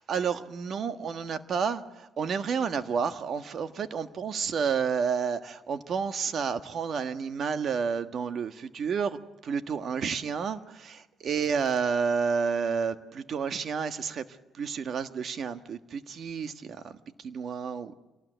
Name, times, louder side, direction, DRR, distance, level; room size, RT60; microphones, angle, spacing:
voice 1, 0.0-14.2 14.5-17.9, right 6 dB, 60° right, 9 dB, 1.5 m, -30 dB
27.5 x 19.0 x 8.1 m, 1.1 s
cardioid pair, 90°, 0 cm